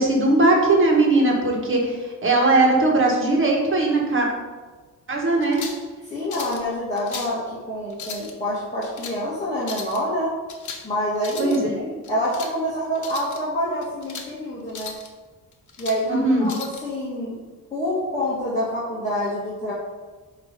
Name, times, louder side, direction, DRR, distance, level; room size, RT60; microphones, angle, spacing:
voice 1, 0.0-4.3 5.1-5.6 11.4-12.0 16.0-16.5, right 2 dB, 35° right, -1 dB, 1.8 m, -19 dB
sound 1, 5.4-5.9 6.3-6.6 7.0-7.4 7.9-8.3 8.8-9.2 9.6-10.0 10.5-10.9 11.2-11.6 12.0-12.5 13.0-13.4 13.8-14.3 14.7-15.1 15.5-16.0 16.5-16.8, left 5 dB, 60° left, 1.1 m, -36 dB
voice 2, 6.1-10.3 10.8-11.6 12.1-15.0 15.8-17.4 17.7-19.7, equal, 20° left, -9 dB, 1.9 m, -27 dB
8.7 x 3.3 x 5.3 m, 1.3 s
cardioid pair, 110°, 34 cm